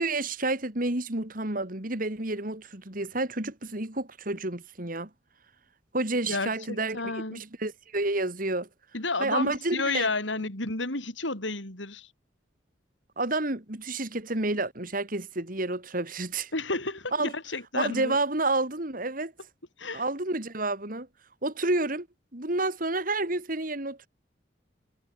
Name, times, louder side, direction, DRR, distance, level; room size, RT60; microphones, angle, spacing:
voice 1, 0.0-5.1 5.9-8.7 9.2-10.1 13.2-16.5 17.1-17.3 17.7-19.3 19.9-21.1 21.4-22.1 22.3-24.1, right 2 dB, 50° right, 3.2 m, -30 dB
voice 2, 6.3-7.4 8.9-12.1 16.5-18.2 19.8-20.0, left 3 dB, 90° left, 7.2 m, -31 dB
head